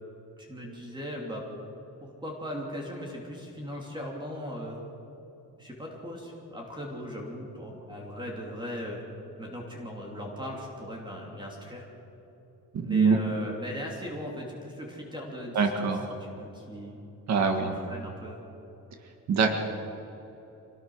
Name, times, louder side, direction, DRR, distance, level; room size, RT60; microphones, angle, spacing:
voice 1, 0.4-1.4 2.0-4.8 5.6-9.1 9.4-11.9 12.8-15.9 16.2-17.0 17.6-18.4, equal, 15° right, -1 dB, 3.0 m, -38 dB
voice 2, 12.7-13.2 15.5-16.0 17.3-17.8 19.3-19.5, right 5 dB, 55° right, 4 dB, 1.8 m, -23 dB
25.5 x 19.5 x 6.4 m, 3.0 s
wide cardioid pair, 170°, 33 cm